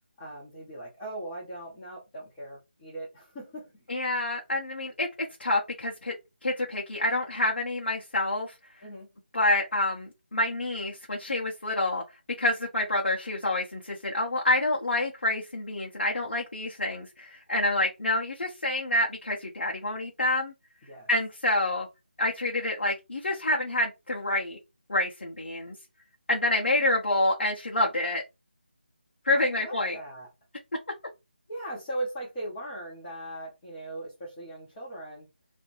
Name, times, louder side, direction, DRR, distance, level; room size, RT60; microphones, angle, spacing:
voice 1, 0.2-3.9 8.8-9.1 20.9-21.1 29.3-30.3 31.5-35.3, right 1 dB, 15° left, 0.9 m, -39 dB
voice 2, 3.9-5.1 5.4-6.1 6.4-8.5 9.3-12.0 12.4-20.5 21.1-21.9 22.2-24.6 24.9-25.8 26.3-28.2 29.2-30.0, left 2 dB, 65° left, 0.7 m, -27 dB
2.4 x 2.1 x 3.1 m
figure-of-eight pair, 160°, 6 cm